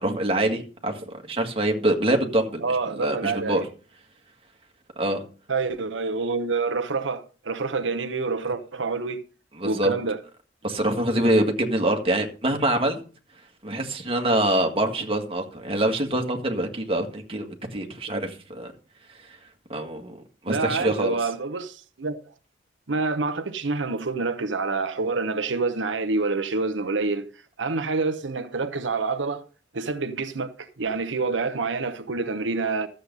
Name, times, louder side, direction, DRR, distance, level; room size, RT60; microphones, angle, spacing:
voice 1, 0.0-2.6 3.0-3.6 5.0-5.2 9.6-9.9 10.6-13.0 13.6-18.7 19.7-20.1 20.4-21.2, right 1 dB, 30° right, 1.9 m, -25 dB
voice 2, 2.6-3.7 5.5-9.2 9.6-10.2 20.5-22.2 22.9-27.2 27.6-29.4 29.7-32.9, right 4 dB, 90° right, 1.0 m, -27 dB
13.0 x 7.8 x 5.4 m
head